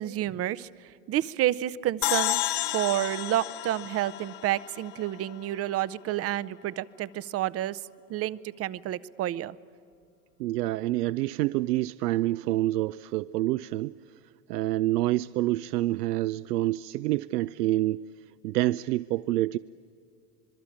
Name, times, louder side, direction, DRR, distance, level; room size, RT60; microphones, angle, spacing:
voice 1, 0.0-7.8 8.1-9.6, right 13 dB, 30° right, 18 dB, 0.6 m, -30 dB
sound 1, 2.0-5.3, left 16 dB, 45° left, 0.9 m, -31 dB
voice 2, 10.4-19.6, right 16 dB, 75° right, 16 dB, 0.6 m, -27 dB
25.5 x 22.0 x 8.7 m, 2.3 s
hypercardioid pair, 100°, 49 cm